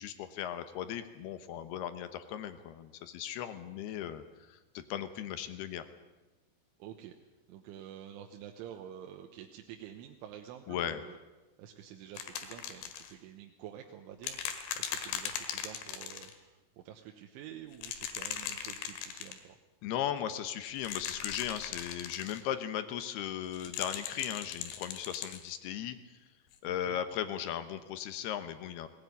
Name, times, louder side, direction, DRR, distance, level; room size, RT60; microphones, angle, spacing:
voice 1, 0.0-5.8 10.7-11.0 19.8-26.0 26.6-28.9, left 10 dB, 70° left, 11 dB, 2.6 m, -37 dB
voice 2, 6.8-7.1 7.5-11.2 11.6-19.6 26.6-27.0, right 10 dB, 90° right, 3 dB, 3.5 m, -49 dB
sound 1, 12.2-13.1 14.2-16.3 17.7-19.4 20.8-22.4 23.5-25.4 26.5-26.6, left 8 dB, 90° left, 4.3 m, -39 dB
19.0 x 19.0 x 9.5 m, 1.1 s
omnidirectional pair, 5.5 m